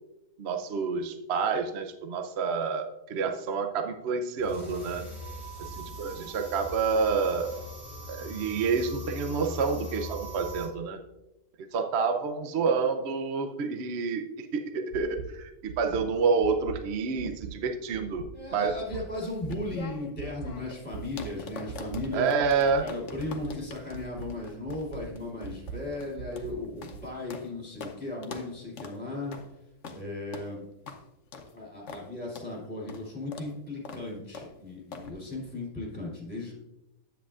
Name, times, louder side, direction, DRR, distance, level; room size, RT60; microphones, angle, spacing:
voice 1, 0.4-5.0 5.7-7.6 8.1-11.0 11.7-18.2 18.5-18.8 22.1-22.9, right 5 dB, 60° right, 5 dB, 0.7 m, -28 dB
sound 1, 4.4-10.7, equal, 25° right, 2.6 m, -41 dB
sound 2, 14.9-15.2 15.7-16.0 16.4-16.7 17.2-17.5 17.9-18.3 18.7-19.0 19.4-19.8 20.2-20.5 20.9-21.3 21.7-22.0 22.4-22.8 23.2-23.5 23.9-24.3 24.7-25.0 25.4-25.7 26.2-26.5 26.9-27.0, right 7 dB, 80° right, 1.3 m, -40 dB
voice 2, 18.3-22.3 22.8-29.3 29.9-30.7 31.5-36.5, left 2 dB, 5° left, -5 dB, 2.9 m, -36 dB
sound 3, 19.2-27.5 27.8-28.0 28.2-28.5 28.8-29.0 29.3-29.5 29.8-30.0 30.3-30.5 30.9-31.0 31.3-31.5 31.9-32.1 32.3-32.5 32.9-33.0 33.3-33.5 33.8-34.0 34.3-34.5 34.9-35.1, left 4 dB, 55° left, 1.0 m, -43 dB
10.0 x 7.9 x 2.4 m, 0.93 s
omnidirectional pair, 1.8 m